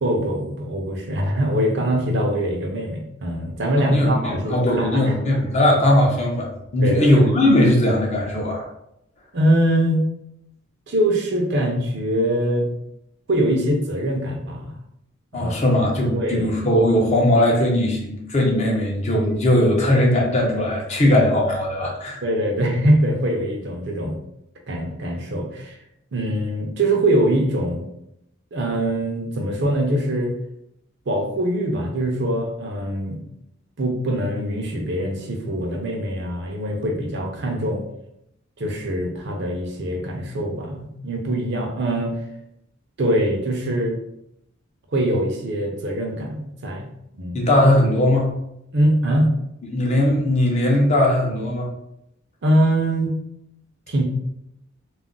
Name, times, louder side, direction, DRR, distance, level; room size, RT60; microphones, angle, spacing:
voice 1, 0.0-5.1 6.8-7.2 9.3-10.0 10.9-12.7 13.3-14.7 15.3-15.5 16.1-16.5 22.2-24.2 24.7-25.8 26.1-27.9 28.5-30.4 31.1-33.2 33.8-37.8 38.6-42.2 43.0-44.0 44.9-46.9 47.2-47.4 48.7-49.3 52.4-53.1 53.9-54.0, right 1 dB, 60° right, 1 dB, 0.6 m, -23 dB
voice 2, 3.8-8.7 15.3-22.2 47.3-48.3 49.6-51.7, left 1 dB, 35° left, -1 dB, 0.6 m, -19 dB
2.4 x 2.1 x 3.7 m, 0.80 s
head